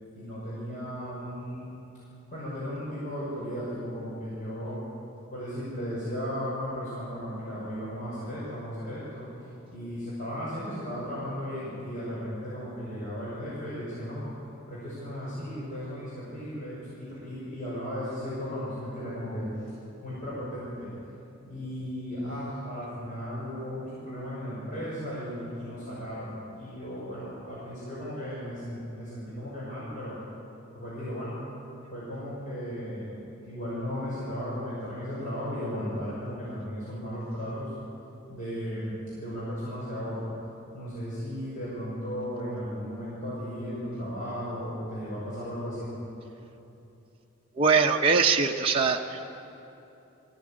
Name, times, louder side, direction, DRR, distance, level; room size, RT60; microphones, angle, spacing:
voice 1, 0.1-1.7 2.3-4.8 5.3-9.3 9.7-14.3 14.7-19.5 20.0-20.9 21.4-30.2 30.7-31.4 31.9-37.7 38.3-40.3 40.7-45.9, equal, 40° left, -9 dB, 6.0 m, -35 dB
voice 2, 47.6-49.2, right 5 dB, 25° right, 0 dB, 0.8 m, -22 dB
21.0 x 15.5 x 8.7 m, 2.9 s
head